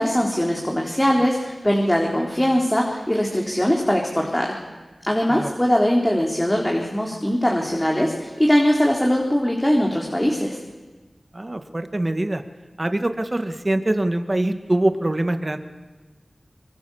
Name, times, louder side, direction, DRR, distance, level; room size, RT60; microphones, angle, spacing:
voice 1, 0.0-4.5 5.0-10.6, equal, 15° left, -1 dB, 3.7 m, -21 dB
voice 2, 11.3-12.4 12.8-15.6, right 1 dB, 35° right, 8 dB, 1.8 m, -23 dB
25.0 x 22.0 x 7.1 m, 1.3 s
cardioid pair, 40°, 0 cm